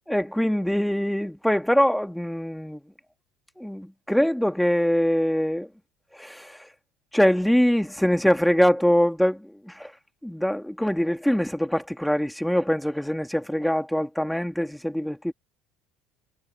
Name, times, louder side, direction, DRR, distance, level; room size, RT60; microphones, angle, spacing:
voice 1, 0.1-2.8 3.6-5.7 6.1-6.6 7.1-9.9 10.2-15.3, equal, ahead, 1.7 m, -23 dB
cardioid pair, 170°, 0 cm